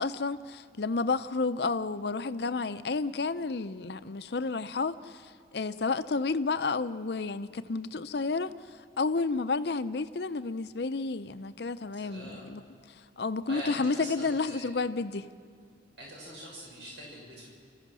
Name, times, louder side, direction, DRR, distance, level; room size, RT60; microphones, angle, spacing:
voice 1, 0.0-12.6 13.2-15.3, left 4 dB, 60° left, 12 dB, 0.6 m, -31 dB
voice 2, 11.9-12.5 13.5-14.7 16.0-17.5, equal, 70° right, -3 dB, 6.6 m, -43 dB
29.5 x 15.0 x 6.2 m, 2.2 s
head